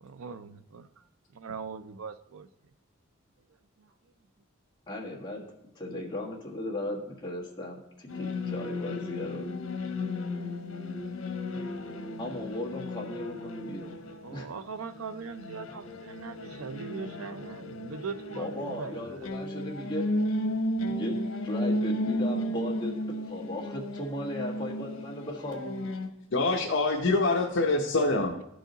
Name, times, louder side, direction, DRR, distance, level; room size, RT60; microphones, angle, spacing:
voice 1, 0.0-0.9 1.3-2.5 3.8-3.9 14.2-19.3, right 5 dB, 85° right, 11 dB, 0.5 m, -40 dB
voice 2, 4.9-5.4 5.7-9.4 12.2-14.0 14.3-14.5 18.3-20.0 20.8-23.0 23.2-25.9, left 1 dB, 20° left, -3 dB, 1.6 m, -36 dB
sound 1, 8.1-26.1, left 1 dB, 90° left, 0.9 m, -34 dB
voice 3, 26.3-28.4, left 2 dB, 65° left, 0 dB, 0.8 m, -25 dB
14.5 x 4.9 x 3.9 m, 0.83 s
head